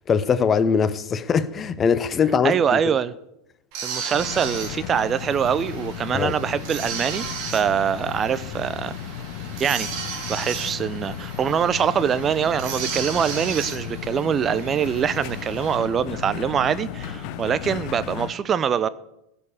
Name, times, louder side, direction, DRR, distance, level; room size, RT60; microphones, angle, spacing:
voice 1, 0.1-2.8 6.1-6.3, left 6 dB, 25° left, 0.8 m, -21 dB
voice 2, 2.4-3.1 3.8-8.9 9.6-9.9 10.3-18.9, right 8 dB, 30° right, 0.7 m, -24 dB
sound 1, 3.7-15.8, right 6 dB, 50° right, 4.0 m, -35 dB
sound 2, 4.1-18.3, left 9 dB, 50° left, 1.1 m, -35 dB
16.5 x 7.1 x 8.6 m
figure-of-eight pair, 85°, 0 cm